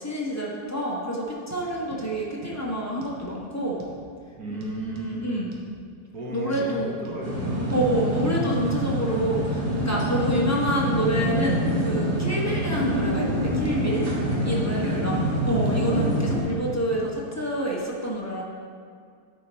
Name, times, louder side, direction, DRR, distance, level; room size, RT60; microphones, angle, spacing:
voice 1, 0.0-3.8 4.5-4.6 5.0-5.5 6.3-6.9 7.7-14.1 14.4-18.4, right 1 dB, 15° left, -5 dB, 0.8 m, -28 dB
sound 1, 1.5-1.6 1.9-2.0 2.4-2.6 3.0-3.2 3.8-4.0 4.6-5.1 5.5-5.7 6.5-6.7 7.1-7.2 7.7-7.9 8.2-8.3 8.7-8.9 9.2-9.4 9.8-9.9 10.2-10.4 10.7-10.8 11.2-11.4 11.7-11.8 12.3-12.4 12.8-13.0 13.2-13.4 13.7-13.8 14.1-14.6 14.9-15.0 15.4-15.8 16.5-16.6 16.9-17.1, right 1 dB, 90° right, 1.6 m, -42 dB
voice 2, 4.4-5.3 6.1-7.8 14.8-15.2 15.5-15.7, right 1 dB, 65° right, -3 dB, 1.7 m, -34 dB
sound 2, 7.2-16.4, equal, 45° right, 2.1 m, -26 dB
10.0 x 4.4 x 4.1 m, 2.1 s
omnidirectional pair, 1.7 m